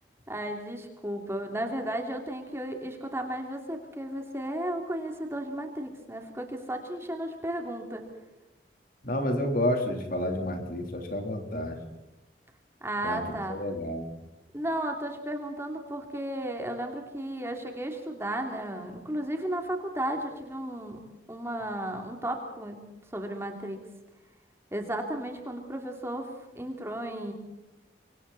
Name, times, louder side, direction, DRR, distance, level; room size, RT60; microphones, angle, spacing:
voice 1, 0.3-8.1 12.8-13.6 14.5-21.0 21.3-22.8 23.1-23.8 24.7-27.3, right 1 dB, 15° right, 3 dB, 2.9 m, -34 dB
voice 2, 9.0-11.8 13.0-14.1, left 1 dB, 50° left, 4 dB, 3.6 m, -30 dB
26.0 x 24.5 x 4.2 m, 1.0 s
head